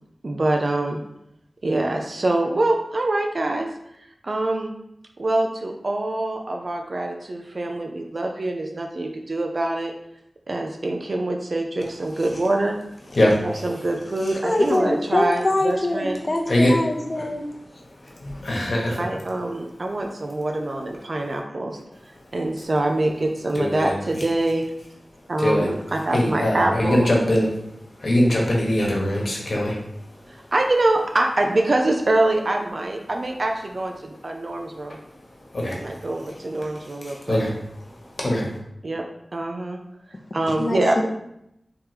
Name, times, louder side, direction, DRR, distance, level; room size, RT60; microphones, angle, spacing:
voice 1, 0.2-1.0 1.6-3.7 4.0-4.7 5.2-9.9 10.5-12.8 13.4-16.2 19.0-24.7 25.3-27.2 30.3-35.0 35.7-37.4 38.8-39.1 39.3-39.8 40.1-41.0, right 2 dB, 60° right, 2 dB, 0.5 m, -25 dB
voice 2, 14.4-17.4 40.5-41.0, left 1 dB, 45° left, 3 dB, 0.7 m, -23 dB
voice 3, 18.0-19.0 23.5-23.9 25.4-25.7 26.1-27.5 28.0-29.8 35.5-36.0 37.0-37.5 37.9-38.5, left 1 dB, 70° left, -2 dB, 1.2 m, -22 dB
3.5 x 3.1 x 4.8 m, 0.80 s
wide cardioid pair, 65°, 0 cm